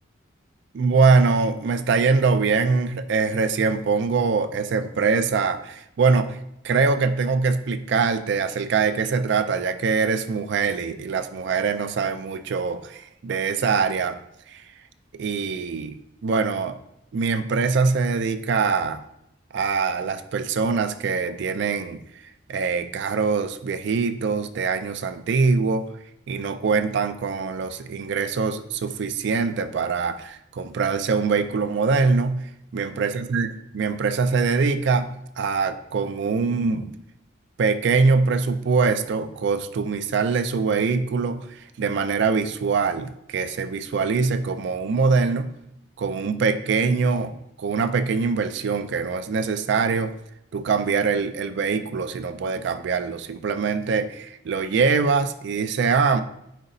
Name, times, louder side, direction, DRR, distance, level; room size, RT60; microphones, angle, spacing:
voice 1, 0.7-6.4 6.6-14.2 14.5-14.6 15.1-16.8 17.1-19.0 19.5-22.0 22.5-25.9 26.3-32.4 32.7-37.0 37.6-41.5 41.8-45.5 46.0-50.1 50.5-56.2, right 4 dB, 60° right, 11 dB, 0.4 m, -23 dB
9.1 x 3.9 x 2.7 m, 0.80 s
head